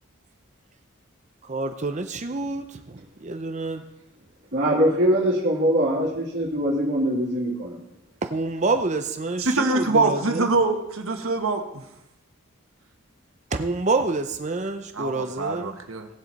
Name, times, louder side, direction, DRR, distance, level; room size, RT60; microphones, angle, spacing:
voice 1, 1.4-3.8 8.2-10.5 13.5-15.8, right 3 dB, 35° right, 7 dB, 0.6 m, -27 dB
voice 2, 4.5-7.8, equal, 55° right, -6 dB, 2.6 m, -22 dB
voice 3, 9.4-11.8 14.9-16.1, right 3 dB, 85° right, 4 dB, 1.6 m, -24 dB
18.0 x 7.6 x 4.1 m, 0.86 s
head